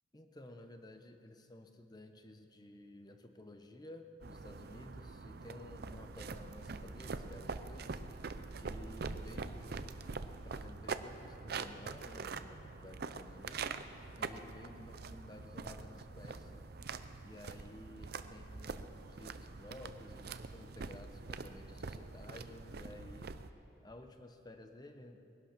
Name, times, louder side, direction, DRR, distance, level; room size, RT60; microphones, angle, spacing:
voice 1, 0.1-13.8 14.2-16.6 17.2-23.3 23.8-25.2, left 1 dB, 20° left, 6 dB, 0.9 m, -54 dB
sound 1, 4.2-23.5, right 4 dB, 50° right, 0.6 m, -44 dB
21.5 x 11.5 x 5.8 m, 2.9 s
head